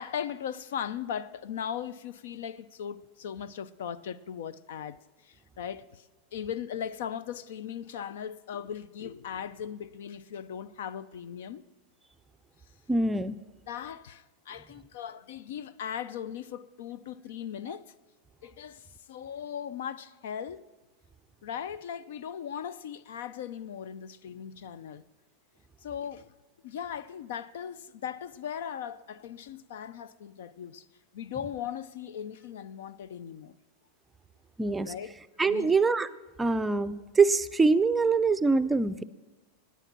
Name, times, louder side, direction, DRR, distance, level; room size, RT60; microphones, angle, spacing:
voice 1, 0.0-5.0 5.2-11.6 13.7-17.9 18.4-20.6 21.4-25.0 25.8-26.3 26.6-30.9 31.1-33.5 34.8-35.2 35.4-35.7, left 8 dB, 75° left, 0.5 m, -38 dB
voice 2, 12.9-13.4 34.6-34.9 35.4-36.1 36.4-39.0, right 4 dB, 10° right, 0.5 m, -24 dB
18.0 x 9.2 x 6.0 m
hypercardioid pair, 120°, 0 cm